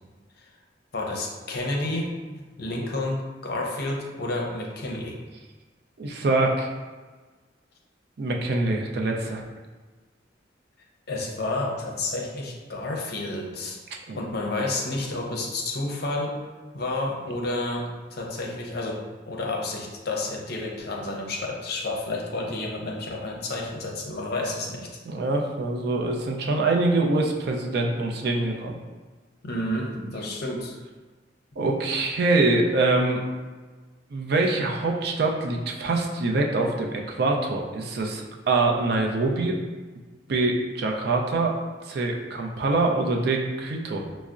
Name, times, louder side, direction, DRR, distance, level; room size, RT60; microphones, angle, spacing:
voice 1, 0.9-2.1 2.3-5.2 11.1-13.8 14.1-16.4 16.7-19.0 19.3-24.9 29.4-30.7, left 2 dB, 55° left, -1 dB, 0.6 m, -30 dB
voice 2, 6.0-6.7 8.2-9.4 14.1-14.2 25.1-28.7 31.6-33.2 34.1-39.6 40.3-41.6 41.8-44.0, right 2 dB, 55° right, 1 dB, 0.4 m, -24 dB
5.4 x 2.0 x 2.4 m, 1.3 s
head